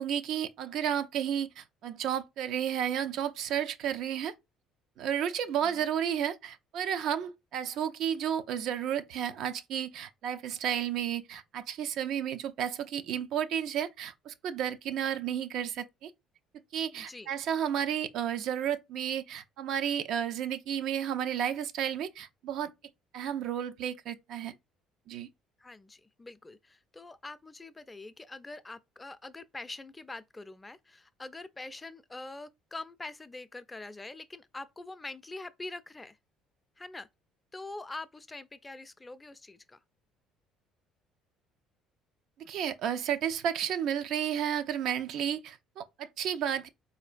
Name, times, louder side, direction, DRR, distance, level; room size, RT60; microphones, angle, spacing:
voice 1, 0.0-4.3 5.0-16.1 16.7-22.7 23.1-24.5 25.1-25.3 42.5-46.7, right 9 dB, 55° right, 0.3 m, -32 dB
voice 2, 16.9-17.3 25.6-36.2 36.8-37.1 37.5-39.8, left 2 dB, 20° left, 0.4 m, -44 dB
4.2 x 2.6 x 2.4 m
figure-of-eight pair, 55°, 0 cm